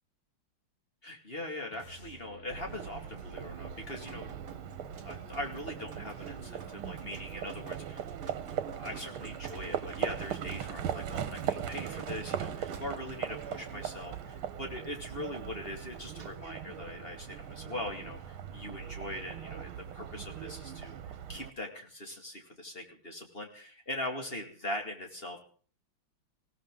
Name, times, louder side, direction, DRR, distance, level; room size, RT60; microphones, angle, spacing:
voice 1, 1.0-4.5 5.0-8.1 8.4-21.0 21.3-25.4, left 1 dB, 25° left, 3 dB, 2.3 m, -41 dB
sound 1, 1.7-7.8, left 1 dB, 70° left, 3.1 m, -54 dB
Livestock farm animals working animals, 2.5-21.5, right 9 dB, 75° right, 1.9 m, -39 dB
Drip, 3.3-16.3, right 7 dB, 45° right, 1.8 m, -52 dB
19.5 x 17.0 x 3.8 m, 0.42 s
omnidirectional pair, 2.4 m